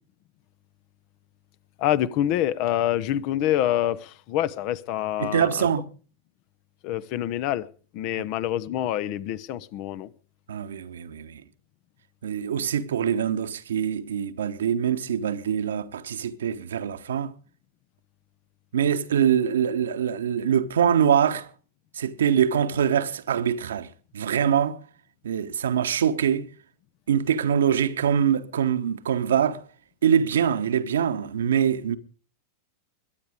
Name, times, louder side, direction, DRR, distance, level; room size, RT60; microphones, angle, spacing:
voice 1, 1.8-5.7 6.8-7.7 7.9-10.1, left 12 dB, 45° left, 0.9 m, -26 dB
voice 2, 5.2-5.8 10.5-11.4 12.2-17.3 18.7-21.5 22.0-23.9 24.1-24.8 25.2-26.4 27.1-29.6 30.0-32.0, right 8 dB, 65° right, 1.1 m, -24 dB
22.0 x 9.3 x 5.1 m
figure-of-eight pair, 90°, 0 cm